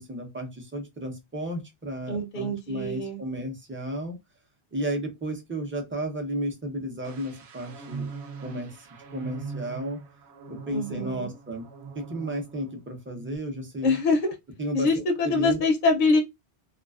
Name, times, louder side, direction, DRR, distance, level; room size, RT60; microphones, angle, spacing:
voice 1, 0.0-4.2 4.7-8.1 8.4-8.9 9.1-10.0 10.5-11.7 11.9-14.0 14.6-15.6, equal, 15° right, 0.5 m, -33 dB
voice 2, 2.1-3.2 10.7-11.3 13.8-14.3 14.7-16.2, left 3 dB, 60° left, 0.6 m, -24 dB
sound 1, 7.0-12.8 13.1-13.4, right 5 dB, 90° right, 0.9 m, -41 dB
2.3 x 2.3 x 2.3 m
omnidirectional pair, 1.1 m